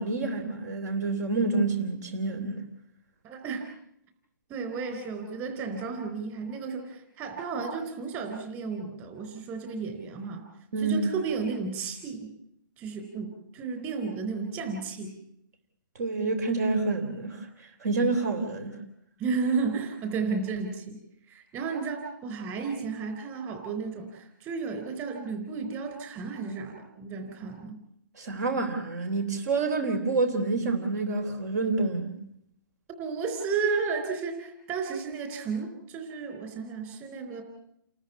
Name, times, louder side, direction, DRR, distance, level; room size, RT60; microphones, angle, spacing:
voice 1, 0.0-2.6 10.7-11.1 15.9-18.8 28.2-32.1, right 3 dB, 50° right, 8 dB, 3.4 m, -28 dB
voice 2, 3.2-3.7 4.5-10.5 10.8-12.3 12.8-15.2 19.2-21.0 21.3-27.8 33.0-37.4, right 5 dB, 20° right, 6 dB, 4.1 m, -33 dB
29.0 x 14.0 x 8.2 m, 0.73 s
hypercardioid pair, 160°, 11 cm